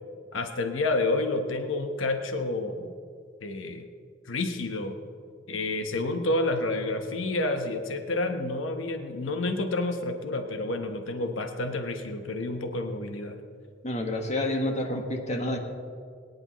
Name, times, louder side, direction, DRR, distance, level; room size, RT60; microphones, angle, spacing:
voice 1, 0.3-2.9 3.4-3.9 4.2-4.9 5.5-13.3, left 2 dB, 75° left, 5 dB, 1.1 m, -29 dB
voice 2, 13.8-15.6, left 1 dB, 35° left, 3 dB, 1.5 m, -29 dB
22.0 x 10.5 x 3.1 m, 2.2 s
head